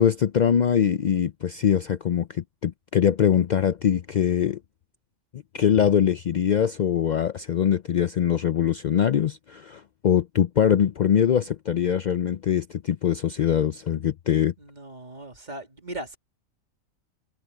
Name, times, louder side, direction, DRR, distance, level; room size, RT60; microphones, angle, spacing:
voice 1, 0.0-4.6 5.3-14.5, left 9 dB, 80° left, 0.4 m, -23 dB
voice 2, 14.6-16.2, right 1 dB, 35° right, 2.5 m, -38 dB
omnidirectional pair, 1.4 m